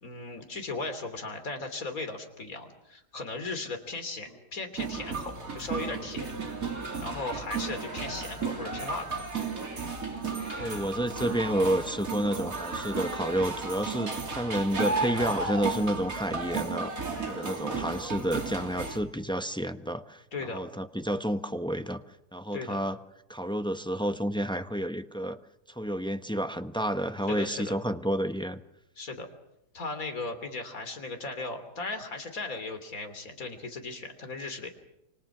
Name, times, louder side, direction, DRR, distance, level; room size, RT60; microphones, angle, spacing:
voice 1, 0.0-6.3 7.0-9.2 20.3-20.6 22.5-22.8 27.3-27.8 29.0-29.3 29.7-34.7, left 3 dB, 55° left, 7 dB, 3.6 m, -37 dB
sound 1, 4.3-4.4 5.1-6.0 6.7-8.1 8.7-9.1 9.6-9.9 10.4-10.9 11.5-12.1 12.4-13.5 13.9-14.5 15.1-15.8 16.1-17.2 17.7-18.2, right 1 dB, 35° right, 7.0 m, -47 dB
sound 2, 4.8-19.0, right 4 dB, 55° right, 3.4 m, -34 dB
voice 2, 10.6-16.9 17.3-20.2 20.5-22.0 22.3-23.0 23.3-25.4 25.7-28.6, equal, 5° left, 8 dB, 0.8 m, -30 dB
29.5 x 25.0 x 6.1 m, 0.83 s
omnidirectional pair, 1.7 m